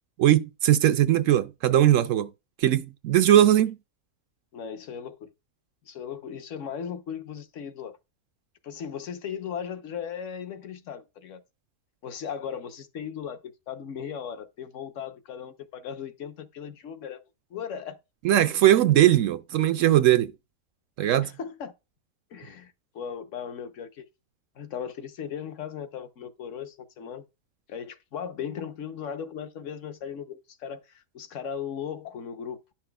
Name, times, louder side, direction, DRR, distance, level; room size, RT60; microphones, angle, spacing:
voice 1, 0.2-2.3 2.6-3.8 18.2-20.3 21.0-21.3, right 12 dB, 70° right, 0.8 m, -20 dB
voice 2, 4.5-5.3 5.8-8.0 8.6-11.4 12.0-17.2 17.5-18.0 18.5-18.6 21.2-21.7 22.3-24.1 24.6-27.2 27.7-32.6, left 8 dB, 60° left, 1.1 m, -37 dB
10.5 x 6.0 x 2.2 m
omnidirectional pair, 1.6 m